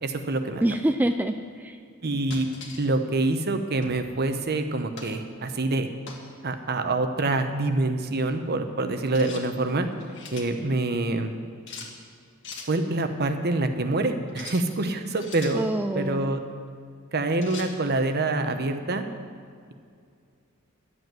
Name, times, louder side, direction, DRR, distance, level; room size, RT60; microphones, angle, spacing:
voice 1, 0.0-0.6 2.0-2.5 2.8-5.9 6.4-9.9 10.3-11.3 12.7-15.7 15.9-16.4 17.1-19.0, right 2 dB, 50° right, 7 dB, 0.9 m, -26 dB
voice 2, 0.6-1.8 15.5-16.4, right 1 dB, 10° right, 6 dB, 0.3 m, -26 dB
sound 1, 2.3-2.9 3.8-4.1 5.0-5.2 6.1-6.3 9.1-9.5 9.9-10.5 11.7-11.9 12.4-12.7 14.3-14.7 15.2-15.6 17.4-17.7, left 4 dB, 60° left, 1.7 m, -41 dB
11.0 x 8.0 x 7.7 m, 2.3 s
head